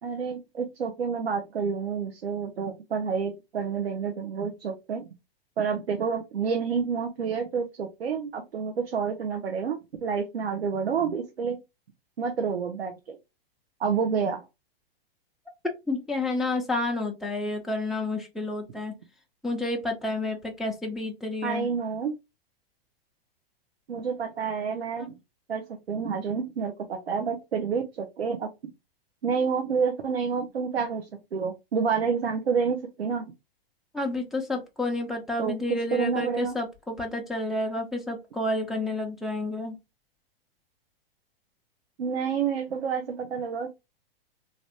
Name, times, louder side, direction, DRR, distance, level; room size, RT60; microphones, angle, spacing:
voice 1, 0.0-5.1 5.6-11.6 12.2-13.2 13.8-14.5 21.4-22.1 23.9-25.1 25.5-28.5 29.2-31.0 31.3-33.3 35.4-35.6 35.9-36.5 42.0-43.7, right 6 dB, 85° right, 4 dB, 0.7 m, -29 dB
voice 2, 15.9-19.0 19.4-21.7 33.9-39.8, left 2 dB, ahead, 0 dB, 0.5 m, -30 dB
3.3 x 2.5 x 2.7 m, 0.24 s
hypercardioid pair, 115°, 30 cm